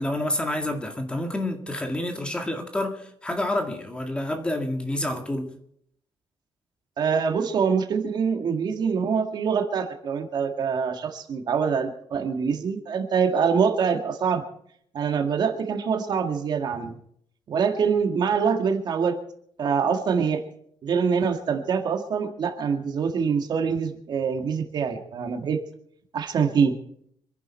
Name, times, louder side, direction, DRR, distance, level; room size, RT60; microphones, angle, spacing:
voice 1, 0.0-5.5, left 1 dB, 10° left, 5 dB, 1.9 m, -28 dB
voice 2, 7.0-14.4 14.9-17.0 17.5-19.2 19.6-20.4 20.8-25.6 26.1-26.8, right 6 dB, 45° right, 6 dB, 1.9 m, -24 dB
26.5 x 11.0 x 4.4 m, 0.68 s
cardioid pair, 175°, 10 cm